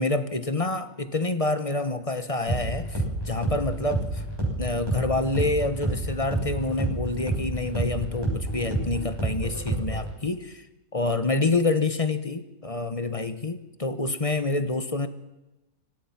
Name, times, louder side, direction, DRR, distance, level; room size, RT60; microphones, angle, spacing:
voice 1, 0.0-4.2 4.6-10.6 10.9-15.1, left 2 dB, 25° left, 10 dB, 1.0 m, -27 dB
sound 1, 2.5-10.1, right 1 dB, 10° right, 6.4 m, -29 dB
25.5 x 17.5 x 5.9 m, 1.0 s
omnidirectional pair, 1.9 m